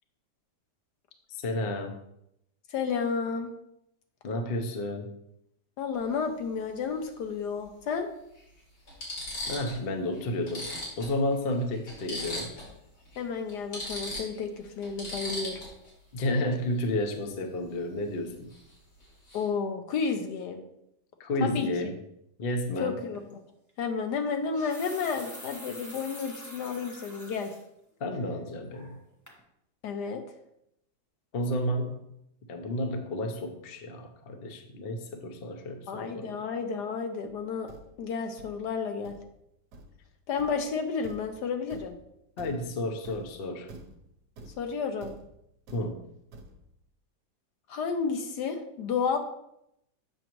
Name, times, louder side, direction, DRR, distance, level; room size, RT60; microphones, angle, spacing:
voice 1, 1.3-1.9 4.2-5.1 9.5-10.7 11.0-12.5 16.1-18.5 21.2-21.9 22.4-23.0 28.0-29.0 31.3-32.0 32.5-36.3 42.4-43.7 45.7-46.0, left 1 dB, 55° left, 5 dB, 0.6 m, -31 dB
voice 2, 2.7-3.5 5.8-8.1 13.2-15.6 19.3-20.6 21.4-21.7 22.8-23.4 23.8-27.5 29.8-30.2 35.9-39.2 40.3-42.0 44.6-45.2 47.7-49.2, left 5 dB, 70° left, 6 dB, 1.1 m, -31 dB
sound 1, 5.9-6.1 7.6-7.7 8.4-8.5 8.9-9.8 10.1-10.2 10.5-12.8 13.0-13.2 13.5-15.9 18.5-18.7 19.0-19.5, left 1 dB, 85° left, 3.1 m, -38 dB
sound 2, 23.1-23.3 24.3-27.6 28.1-28.2 28.7-29.0 29.3-29.4, equal, 15° left, 0.8 m, -46 dB
Thump thud, 37.3-46.9, right 1 dB, 65° right, 1.2 m, -50 dB
7.8 x 6.1 x 3.0 m, 0.79 s
omnidirectional pair, 2.0 m